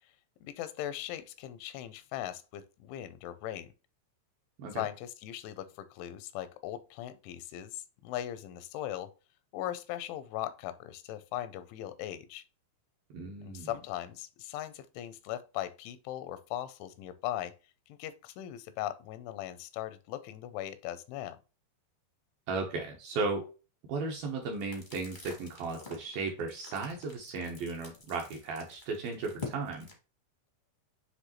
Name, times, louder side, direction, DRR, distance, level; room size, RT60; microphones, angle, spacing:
voice 1, 0.4-3.7 4.7-9.1 9.5-12.4 13.4-17.6 17.9-21.4, left 12 dB, 85° left, 3.0 m, -39 dB
voice 2, 13.1-13.7 22.5-23.5 23.9-29.9, right 3 dB, 70° right, 2.3 m, -35 dB
sound 1, 24.2-29.9, left 4 dB, 70° left, 0.4 m, -48 dB
9.7 x 3.4 x 3.0 m
omnidirectional pair, 5.3 m